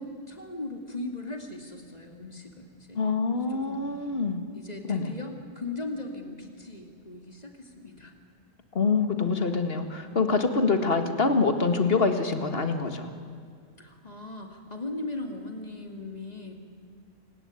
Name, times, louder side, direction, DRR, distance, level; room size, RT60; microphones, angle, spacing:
voice 1, 0.0-3.0 3.3-3.9 4.5-8.1 13.8-16.5, left 2 dB, 35° left, 4 dB, 2.7 m, -38 dB
voice 2, 3.0-4.4 4.9-5.1 8.7-13.1, left 4 dB, 55° left, 7 dB, 2.0 m, -25 dB
28.5 x 17.5 x 9.7 m, 2.4 s
omnidirectional pair, 1.2 m